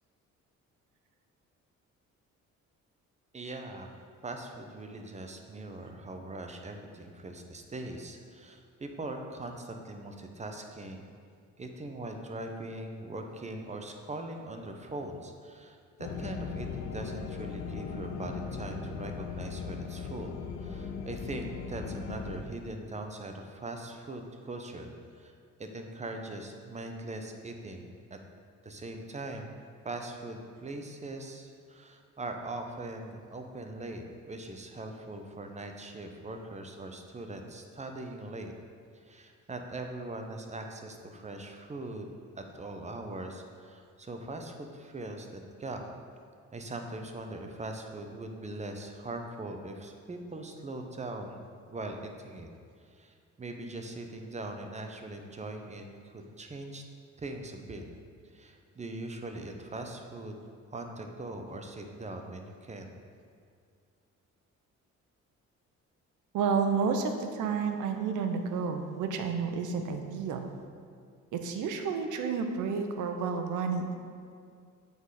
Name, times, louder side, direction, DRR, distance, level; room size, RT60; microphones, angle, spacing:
voice 1, 3.3-3.9 4.2-11.1 11.6-25.3 25.6-28.2 28.6-29.6 29.8-38.5 39.0-42.1 42.4-45.8 46.5-52.0 52.2-52.5 52.9-56.8 57.2-57.8 58.3-60.4 60.7-62.9, right 2 dB, 25° right, 4 dB, 0.8 m, -41 dB
sound 1, 16.0-22.4, left 5 dB, 65° left, 0.7 m, -38 dB
voice 2, 66.3-70.5 71.3-73.9, right 5 dB, 85° right, 5 dB, 0.7 m, -30 dB
8.0 x 4.1 x 4.8 m, 2.2 s
cardioid pair, 90°, 30 cm